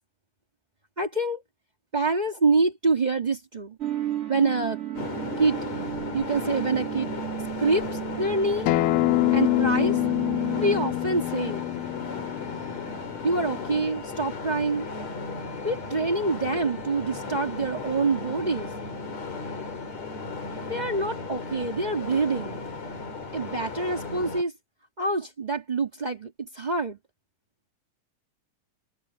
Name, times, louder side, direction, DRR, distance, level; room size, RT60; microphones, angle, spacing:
voice 1, 1.0-1.4 1.9-3.8 4.3-4.8 5.4-5.6 6.1-7.1 7.6-7.9 8.2-8.7 9.3-10.0 10.6-11.6 13.2-14.9 15.6-18.7 20.7-22.6 23.3-24.5 25.0-27.0, right 3 dB, 85° right, 0.4 m, -26 dB
sound 1, 3.8-10.9, right 13 dB, 45° right, 0.9 m, -34 dB
sound 2, 4.9-24.4, left 4 dB, 50° left, 5.2 m, -35 dB
Acoustic guitar, 8.7-13.9, left 20 dB, 85° left, 2.3 m, -26 dB
omnidirectional pair, 3.9 m